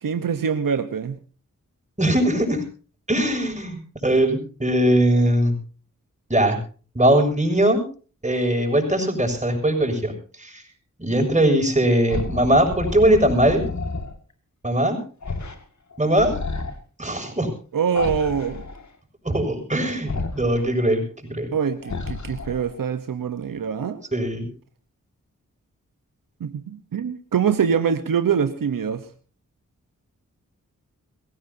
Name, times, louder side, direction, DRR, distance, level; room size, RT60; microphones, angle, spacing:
voice 1, 0.0-1.2 17.7-18.6 21.5-24.0 26.4-29.0, right 7 dB, 85° right, 10 dB, 1.1 m, -24 dB
voice 2, 2.0-2.6 3.1-5.6 6.3-6.6 6.9-7.8 8.2-10.1 10.4-10.6 11.0-13.6 14.6-15.0 16.0-16.4 17.0-17.5 19.2-21.0 21.3-21.5 24.1-24.5, right 1 dB, 20° right, 4 dB, 7.0 m, -20 dB
sound 1, 12.1-14.1 15.2-15.6 15.9-16.7 18.0-18.8 20.1-20.6 21.8-22.8, left 3 dB, 60° left, 2.2 m, -30 dB
23.0 x 16.0 x 2.8 m, 0.38 s
cardioid pair, 40°, 33 cm